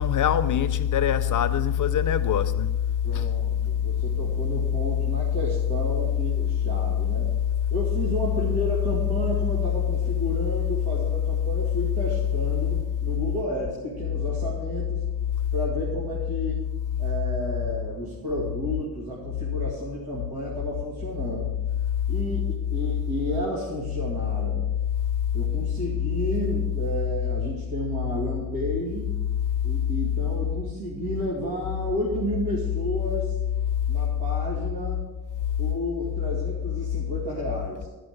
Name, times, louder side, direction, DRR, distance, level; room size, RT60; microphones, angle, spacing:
voice 1, 0.0-2.7 3.1-3.2, left 9 dB, 50° left, 0.6 m, -23 dB
voice 2, 3.0-7.3 7.7-15.0 15.5-16.6 17.0-21.5 22.1-24.6 25.3-29.1 29.6-33.4 33.9-35.0 35.6-37.9, equal, 80° right, 2.4 m, -32 dB
13.5 x 5.2 x 6.5 m
wide cardioid pair, 155°, 39 cm